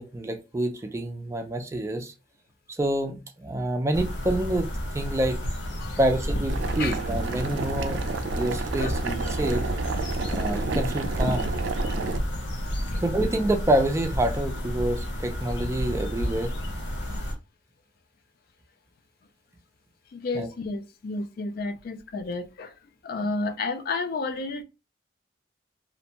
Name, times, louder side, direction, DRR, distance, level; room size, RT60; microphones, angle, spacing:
voice 1, 0.0-2.1 2.8-5.4 6.0-8.0 8.3-9.6 10.3-11.5 13.0-16.5 20.3-20.5, right 1 dB, 15° right, 0.3 m, -27 dB
sound 1, 3.9-17.3, equal, 85° left, 0.7 m, -31 dB
Boiling, 6.5-12.2, right 4 dB, 85° right, 0.3 m, -31 dB
voice 2, 6.7-7.4 7.8-8.5 8.8-9.0 11.9-12.1 12.9-13.0 17.1-17.2 20.1-22.7 23.0-24.6, left 3 dB, 55° left, 0.3 m, -32 dB
2.5 x 2.1 x 2.8 m
head